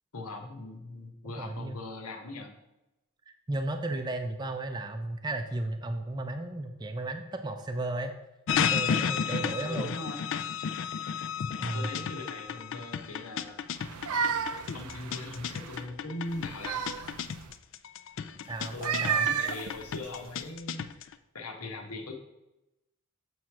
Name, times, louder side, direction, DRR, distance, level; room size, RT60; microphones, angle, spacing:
voice 1, 0.1-2.5 9.3-10.2 11.5-13.6 14.2-14.3 14.7-16.8 18.2-18.3 18.7-22.2, left 2 dB, 85° left, 3 dB, 1.1 m, -40 dB
voice 2, 1.4-1.8 3.3-8.1 8.6-9.9 11.6-11.9 18.5-19.2, right 2 dB, 20° right, 6 dB, 0.4 m, -34 dB
sound 1, 8.5-21.1, left 7 dB, 60° left, 0.3 m, -33 dB
sound 2, 13.8-15.8 16.3-17.5 18.6-20.5, right 7 dB, 90° right, 0.5 m, -33 dB
7.4 x 3.2 x 5.8 m, 0.94 s
head